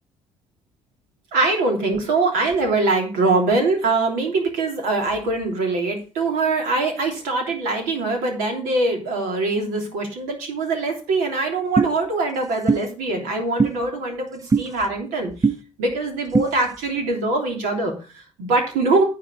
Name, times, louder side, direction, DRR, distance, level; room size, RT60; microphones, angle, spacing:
voice 1, 1.3-15.3 15.8-19.0, right 3 dB, 80° right, 2 dB, 3.2 m, -23 dB
sound 1, 11.8-11.9 12.7-12.8 13.6-13.7 14.5-14.7 15.4-15.6 16.3-16.5, right 4 dB, 25° right, 0.6 m, -18 dB
10.0 x 4.8 x 7.7 m, 0.35 s
hypercardioid pair, 55°, 14 cm